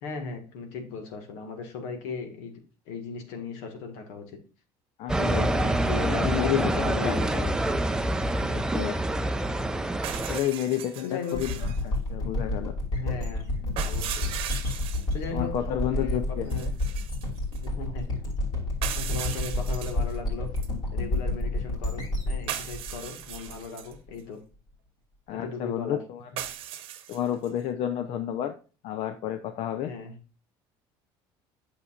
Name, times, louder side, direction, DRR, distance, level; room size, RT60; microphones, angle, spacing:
voice 1, 0.0-2.6 2.9-4.4 5.5-7.5 8.4-8.8 11.0-11.6 12.9-13.5 13.8-14.4 15.1-15.5 15.9-16.7 17.6-18.3 18.9-20.5 20.9-24.4 25.3-26.0 29.8-30.2, left 4 dB, 85° left, 5 dB, 1.7 m, -37 dB
voice 2, 5.0-5.5 6.1-7.2 8.5-9.0 10.2-12.7 15.3-16.7 25.3-26.3 27.1-28.6 28.8-29.9, left 11 dB, 60° left, 9 dB, 0.6 m, -31 dB
sound 1, 5.1-10.4, right 1 dB, 5° right, 0.4 m, -26 dB
sound 2, 10.0-11.8 13.8-15.1 16.5-17.7 18.8-20.2 20.6-20.7 22.5-23.9 26.4-27.5, right 11 dB, 60° right, 0.9 m, -37 dB
sound 3, 11.3-24.0, left 2 dB, 45° left, 2.9 m, -30 dB
8.5 x 6.6 x 2.4 m, 0.35 s
cardioid pair, 130°, 10 cm